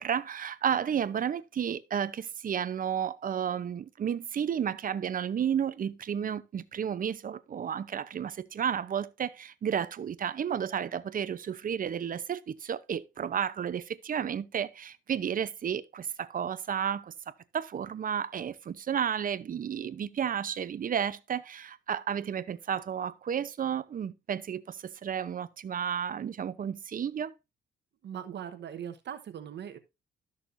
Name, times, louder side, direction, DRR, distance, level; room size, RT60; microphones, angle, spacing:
voice 1, 0.0-17.1 17.5-27.3, right 8 dB, 45° right, 0.7 m, -32 dB
voice 2, 28.0-29.8, right 9 dB, 60° right, 1.1 m, -40 dB
13.0 x 6.5 x 2.6 m
cardioid pair, 90°, 20 cm